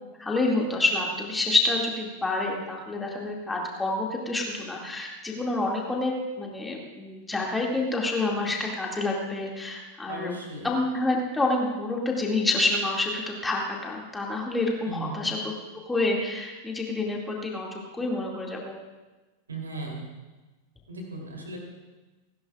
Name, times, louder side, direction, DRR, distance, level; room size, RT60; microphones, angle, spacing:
voice 1, 0.2-10.3 10.6-15.5 15.9-18.8, left 2 dB, 10° left, -1 dB, 2.4 m, -28 dB
voice 2, 10.1-10.7 14.9-15.2 19.5-20.0 20.9-21.6, right 2 dB, 75° right, 0 dB, 3.4 m, -36 dB
29.5 x 11.0 x 2.5 m, 1.2 s
figure-of-eight pair, 90°, 0 cm